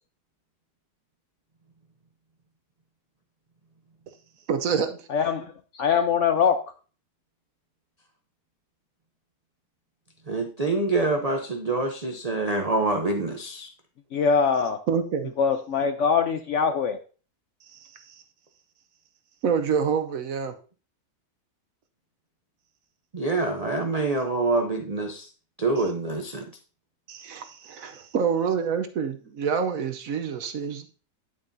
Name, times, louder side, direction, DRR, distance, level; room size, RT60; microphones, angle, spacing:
voice 1, 4.5-5.1 14.9-15.3 17.7-18.2 19.4-20.5 27.1-30.9, right 6 dB, 65° right, 8 dB, 1.1 m, -27 dB
voice 2, 5.1-6.6 14.1-14.8 15.4-17.0, left 6 dB, 65° left, 8 dB, 0.8 m, -23 dB
voice 3, 10.3-13.7 23.1-25.3 25.6-26.4, right 2 dB, 45° right, 4 dB, 0.5 m, -26 dB
9.2 x 8.7 x 2.6 m, 0.37 s
omnidirectional pair, 1.7 m